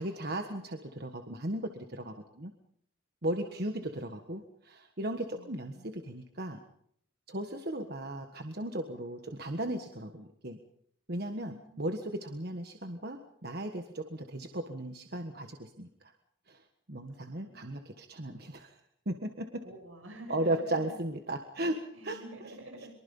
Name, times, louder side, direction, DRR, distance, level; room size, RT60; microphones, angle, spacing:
voice 1, 0.0-2.5 3.2-6.6 7.3-10.6 11.1-16.1 16.5-16.6 16.9-18.8 19.0-19.6 20.3-21.8 22.0-22.2, right 1 dB, 50° right, 5 dB, 1.5 m, -36 dB
voice 2, 3.4-4.1 5.3-5.9 11.3-11.9 17.1-17.8 19.6-21.0 21.9-22.9, right 1 dB, 80° right, 4 dB, 7.6 m, -49 dB
24.0 x 23.5 x 5.5 m, 0.69 s
head